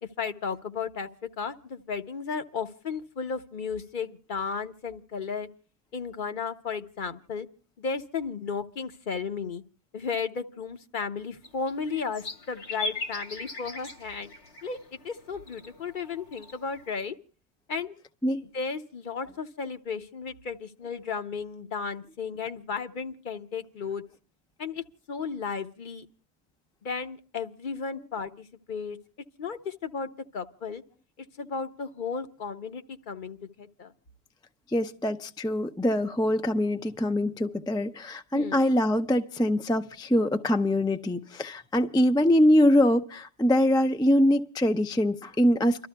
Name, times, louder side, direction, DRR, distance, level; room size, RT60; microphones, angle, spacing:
voice 1, 0.2-1.1 1.4-5.5 5.9-7.5 7.8-9.6 9.9-14.3 14.6-17.1 17.7-17.9 18.4-24.0 24.6-26.1 26.8-29.0 29.4-30.8 31.4-33.9 38.3-38.6, left 5 dB, 50° left, 0.9 m, -34 dB
sound 1, 11.4-16.9, left 3 dB, 85° left, 2.3 m, -40 dB
voice 2, 34.7-45.9, left 1 dB, 5° left, 0.4 m, -23 dB
30.0 x 13.0 x 2.2 m
omnidirectional pair, 1.1 m